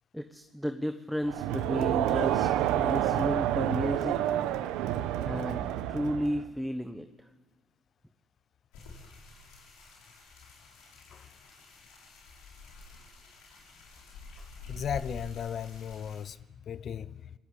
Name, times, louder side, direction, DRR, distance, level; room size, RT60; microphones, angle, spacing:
voice 1, 0.1-2.5 2.8-4.2 5.2-7.0, equal, ahead, 8 dB, 1.2 m, -33 dB
Crowd, 1.3-6.4, right 12 dB, 85° right, 1.2 m, -29 dB
sound 1, 8.7-16.2, left 3 dB, 90° left, 7.2 m, -48 dB
voice 2, 14.7-16.4 16.7-17.3, left 8 dB, 55° left, 17 dB, 0.7 m, -36 dB
28.5 x 20.0 x 8.3 m, 1.3 s
supercardioid pair, 80°, 0 cm